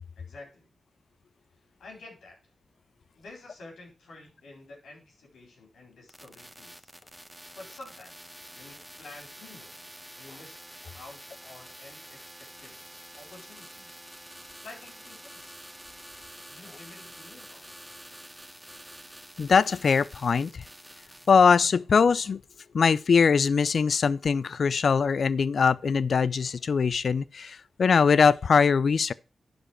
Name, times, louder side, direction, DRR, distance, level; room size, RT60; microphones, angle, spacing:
voice 1, 0.2-0.7 1.8-2.4 3.2-6.9 7.5-9.9 10.2-10.6 10.9-12.7 13.1-14.0 14.6-15.5 16.5-17.7, left 2 dB, 85° left, 4.3 m, -49 dB
sound 1, 6.1-21.3, right 1 dB, 10° right, 1.0 m, -47 dB
voice 2, 19.4-20.6 21.3-22.4 22.7-29.1, left 5 dB, 70° left, 0.4 m, -22 dB
11.5 x 5.2 x 4.4 m
cardioid pair, 45°, 0 cm